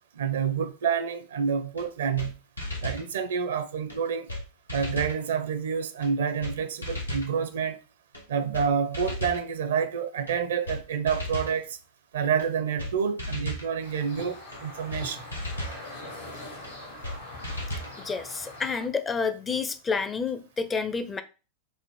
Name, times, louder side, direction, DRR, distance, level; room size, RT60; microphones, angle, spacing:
voice 1, 0.1-2.4 2.8-4.3 4.7-7.8 8.3-11.8 12.1-15.2, right 7 dB, 65° right, 0.6 m, -28 dB
sound 1, 1.8-1.9 2.2-2.3 2.6-3.1 3.9-4.0 4.3-4.4 4.7-5.2 6.0-6.1 6.4-6.5 6.8-7.3 8.1-8.2 8.5-8.7 8.9-9.4 10.3-10.4 10.7-10.8 11.1-11.6 12.4-12.5 12.8-12.9 13.2-13.7 14.5-14.6 14.9-15.0 15.3-15.8 16.6-16.7 17.0-17.2 17.4-17.9, left 1 dB, 85° left, 1.0 m, -34 dB
sound 2, 13.8-18.9, left 1 dB, 70° left, 1.8 m, -42 dB
voice 2, 18.0-21.2, left 5 dB, 20° left, 0.5 m, -29 dB
5.3 x 2.5 x 3.6 m
figure-of-eight pair, 90°, 0 cm